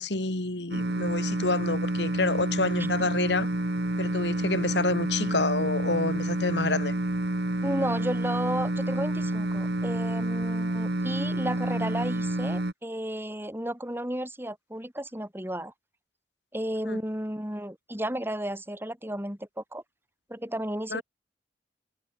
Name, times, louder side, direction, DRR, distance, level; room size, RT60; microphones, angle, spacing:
voice 1, 0.0-3.5 4.0-6.9 16.9-17.0 20.9-21.0, left 3 dB, 90° left, 2.3 m, -28 dB
sound 1, 0.7-12.7, right 1 dB, 70° right, 1.7 m, -29 dB
voice 2, 7.6-15.7 16.5-19.8 20.3-21.0, right 1 dB, 15° right, 5.3 m, -33 dB
head